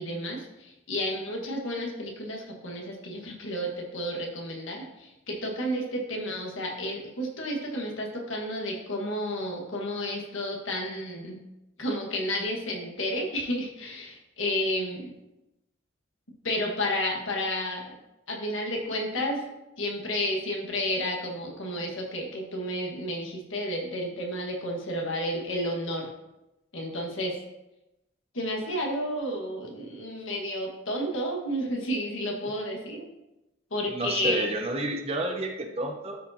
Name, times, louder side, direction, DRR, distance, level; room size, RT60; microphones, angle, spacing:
voice 1, 0.0-11.4 11.8-15.1 16.4-17.9 18.3-19.5 19.8-26.1 26.7-27.4 28.3-33.0 33.7-34.5, equal, 75° left, -1 dB, 1.7 m, -31 dB
voice 2, 33.9-36.2, right 1 dB, 30° right, 3 dB, 0.8 m, -30 dB
13.0 x 4.9 x 2.8 m, 0.94 s
head